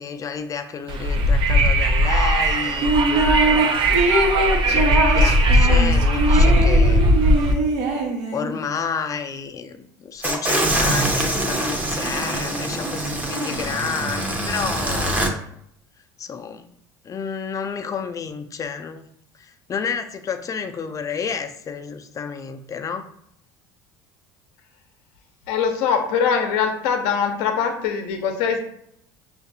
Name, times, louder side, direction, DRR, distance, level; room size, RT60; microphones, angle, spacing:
voice 1, 0.0-2.9 3.5-3.6 4.7-7.1 8.3-15.2 16.2-16.7 17.0-19.0 19.4-23.1, left 6 dB, 30° left, 7 dB, 0.5 m, -30 dB
Wind, 0.9-7.5, equal, 50° right, 0.6 m, -18 dB
sound 1, 2.8-3.6 3.9-8.6, right 2 dB, 65° right, 1.0 m, -22 dB
sound 2, 10.2-15.3, right 1 dB, 15° right, 0.8 m, -24 dB
voice 2, 25.5-28.6, left 6 dB, 75° left, 5 dB, 0.6 m, -22 dB
5.7 x 2.5 x 2.7 m, 0.71 s
supercardioid pair, 85°, 11 cm